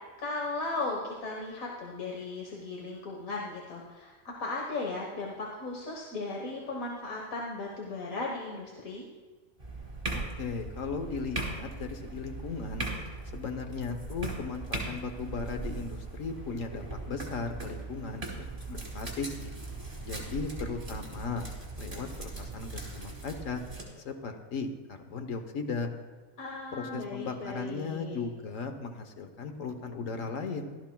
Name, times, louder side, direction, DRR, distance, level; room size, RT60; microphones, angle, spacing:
voice 1, 0.2-9.1 26.4-28.2, left 3 dB, 90° left, -1 dB, 1.8 m, -36 dB
sound 1, 9.6-23.8, right 2 dB, 25° right, 3.3 m, -39 dB
voice 2, 10.1-12.8 13.3-18.2 18.7-19.5 20.0-21.5 21.8-23.6 24.0-25.9 26.7-30.7, left 4 dB, 70° left, 6 dB, 1.4 m, -37 dB
17.5 x 13.0 x 2.3 m, 1.4 s
omnidirectional pair, 1.4 m